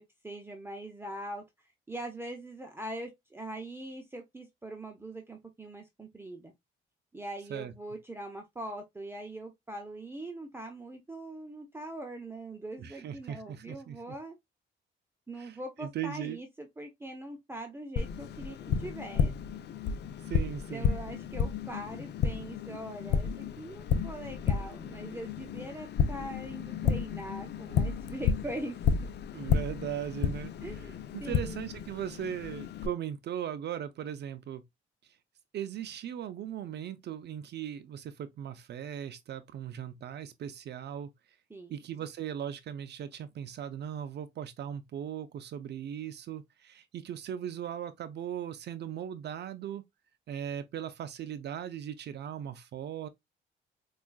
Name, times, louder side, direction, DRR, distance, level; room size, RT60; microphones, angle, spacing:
voice 1, 0.0-1.4 1.9-6.5 7.1-14.4 15.3-19.3 20.7-28.8 30.6-31.7 41.5-41.8, right 1 dB, 10° right, 0.8 m, -42 dB
voice 2, 12.8-14.2 15.4-16.4 20.2-20.9 29.3-30.5 30.8-30.9 31.1-34.6 35.5-41.1 41.7-49.9 50.3-53.1, right 9 dB, 60° right, 0.4 m, -38 dB
Tap, 18.0-32.9, left 6 dB, 60° left, 0.5 m, -32 dB
4.4 x 2.4 x 2.3 m
cardioid pair, 90°, 20 cm